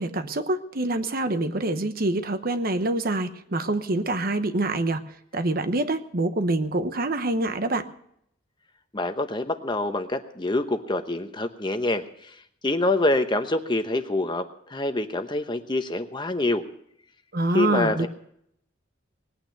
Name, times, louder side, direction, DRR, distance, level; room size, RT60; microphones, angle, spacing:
voice 1, 0.0-5.0 5.3-7.9 17.3-18.1, right 2 dB, 50° right, 10 dB, 1.0 m, -26 dB
voice 2, 8.9-12.3 12.6-14.4 14.7-16.6 17.5-18.1, left 2 dB, 25° left, 8 dB, 1.0 m, -26 dB
20.0 x 9.1 x 6.6 m, 0.70 s
head